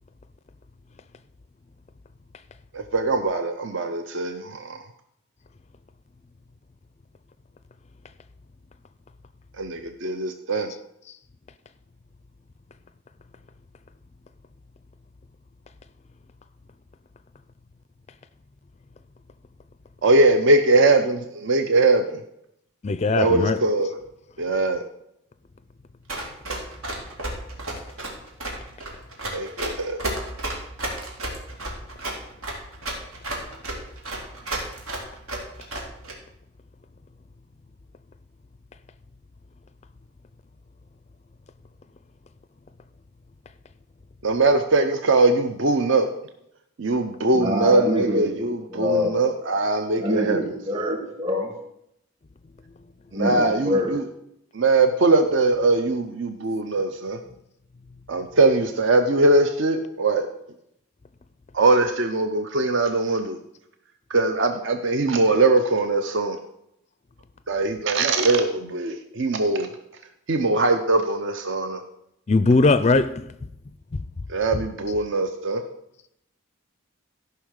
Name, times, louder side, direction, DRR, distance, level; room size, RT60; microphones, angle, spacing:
voice 1, 2.7-4.8 9.6-10.7 20.0-22.2 23.2-23.9 24.4-24.8 29.3-30.0 44.2-46.1 46.8-50.4 50.7-50.8 53.1-54.0 54.5-57.2 58.1-60.3 61.5-63.4 64.1-66.4 67.5-69.7 70.3-71.8 74.3-75.6, right 2 dB, 60° right, 0.7 m, -21 dB
voice 2, 22.8-23.6 72.3-73.3 73.9-74.0 74.5-74.6, left 3 dB, 30° left, 0.4 m, -19 dB
Run, 26.1-36.1, right 2 dB, 85° right, 2.8 m, -31 dB
voice 3, 47.3-48.3 48.7-49.2 50.0-51.5 53.1-54.0, left 1 dB, 30° right, 2.8 m, -25 dB
14.0 x 5.7 x 6.4 m
head